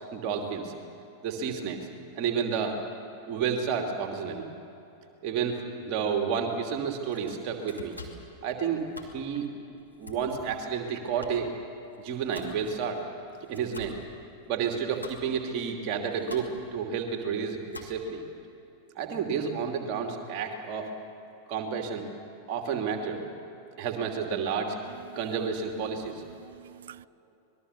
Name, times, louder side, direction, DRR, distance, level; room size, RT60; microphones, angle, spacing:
voice 1, 0.1-0.7 1.2-1.9 2.1-2.8 3.2-4.5 5.2-8.0 8.4-8.9 9.1-9.5 10.0-11.5 12.0-13.0 13.5-14.0 14.5-18.2 19.0-20.9 21.5-22.1 22.5-23.2 23.8-24.8 25.1-26.2, right 6 dB, 40° right, 3 dB, 2.8 m, -30 dB
Domestic sounds home sounds, 6.9-18.3, left 2 dB, 85° left, 2.6 m, -49 dB
voice 2, 25.9-27.1, right 10 dB, 60° right, 21 dB, 0.4 m, -49 dB
26.0 x 21.0 x 6.9 m, 2.9 s
figure-of-eight pair, 90°, 0 cm